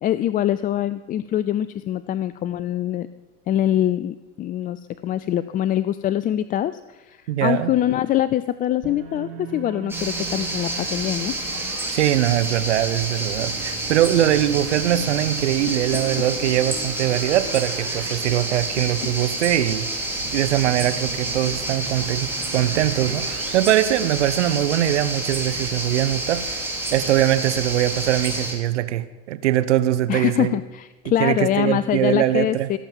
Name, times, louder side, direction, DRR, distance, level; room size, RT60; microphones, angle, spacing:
voice 1, 0.0-3.1 3.5-11.4 30.1-32.8, left 12 dB, 25° left, 15 dB, 0.4 m, -24 dB
voice 2, 7.3-7.7 11.9-19.9 20.3-26.6 26.9-30.6 31.2-32.7, right 13 dB, 75° right, 14 dB, 0.8 m, -22 dB
sound 1, 8.8-11.9 13.3-18.2 18.5-18.6 20.2-23.7, right 8 dB, 40° right, 2.1 m, -38 dB
sound 2, 9.9-28.5, right 2 dB, 5° right, 3.5 m, -29 dB
sound 3, 15.7-16.4 18.8-19.3, left 12 dB, 55° left, 1.1 m, -34 dB
17.5 x 7.3 x 7.2 m, 1.1 s
hypercardioid pair, 90°, 35 cm